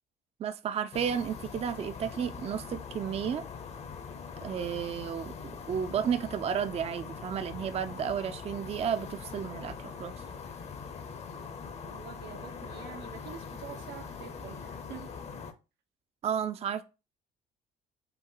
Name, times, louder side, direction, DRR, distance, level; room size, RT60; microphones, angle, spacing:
voice 1, 0.4-3.4 4.4-5.3 5.7-10.2 16.2-16.8, right 8 dB, 35° right, 0.4 m, -32 dB
sound 1, 0.9-15.5, left 5 dB, 40° left, 0.7 m, -42 dB
voice 2, 11.8-15.1, right 9 dB, 90° right, 0.8 m, -46 dB
5.5 x 2.2 x 3.8 m
cardioid pair, 110°, 17 cm